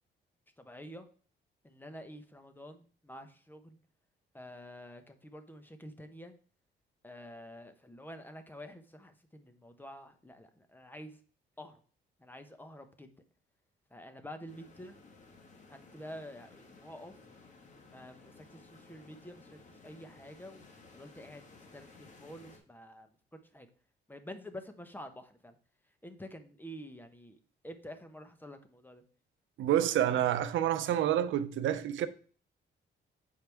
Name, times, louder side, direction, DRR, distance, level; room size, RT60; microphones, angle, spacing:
voice 1, 0.6-1.1 1.6-3.8 4.3-6.3 7.0-11.2 11.6-11.8 12.2-13.1 13.9-15.0 15.7-17.2 17.9-20.7 20.9-23.1 23.5-23.7 24.1-25.6 26.0-29.0, equal, 10° left, 1.0 m, -48 dB
sound 1, 14.5-22.6, left 3 dB, 40° left, 1.6 m, -57 dB
voice 2, 29.6-32.1, right 11 dB, 75° right, 0.7 m, -28 dB
8.4 x 4.8 x 3.5 m
cardioid pair, 90°, 20 cm